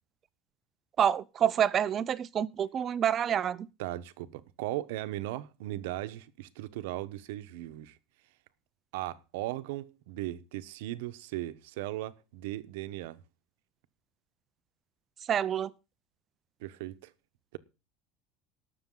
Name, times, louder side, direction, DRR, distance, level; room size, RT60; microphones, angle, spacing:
voice 1, 1.0-3.7 15.3-15.7, right 9 dB, 25° right, 0.5 m, -27 dB
voice 2, 3.8-8.0 8.9-13.2 16.6-17.1, right 15 dB, 75° right, 1.0 m, -37 dB
19.0 x 6.8 x 3.8 m
cardioid pair, 170°, 0 cm